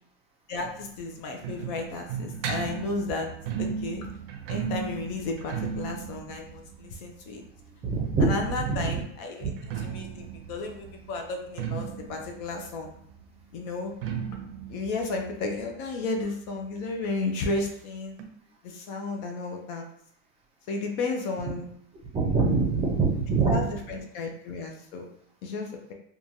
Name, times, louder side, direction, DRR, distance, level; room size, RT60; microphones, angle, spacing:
voice 1, 0.5-3.3 3.6-4.1 4.5-7.4 8.2-9.5 9.8-12.9 13.5-13.9 14.7-18.2 18.6-19.8 20.7-21.7 23.5-25.1 25.4-25.9, left 3 dB, 50° left, 3 dB, 0.5 m, -33 dB
sound 1, 0.6-8.3 9.4-16.8 17.1-17.2 17.4-17.5 18.2-18.3, right 7 dB, 75° right, 0.6 m, -36 dB
voice 2, 7.8-8.4 8.6-9.0 9.4-9.5 22.1-23.6, right 4 dB, 20° right, -2 dB, 0.6 m, -24 dB
2.9 x 2.3 x 2.6 m, 0.70 s
supercardioid pair, 150°, 30 cm